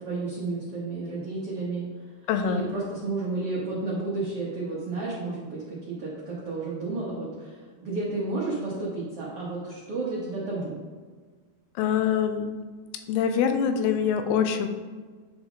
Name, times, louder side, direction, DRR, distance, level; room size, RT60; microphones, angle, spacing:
voice 1, 0.0-1.8 2.4-10.8, right 3 dB, 85° right, -6 dB, 1.2 m, -32 dB
voice 2, 2.3-2.7 11.8-12.5 13.1-14.7, left 7 dB, 85° left, 7 dB, 2.6 m, -24 dB
10.0 x 3.6 x 3.6 m, 1.5 s
omnidirectional pair, 4.5 m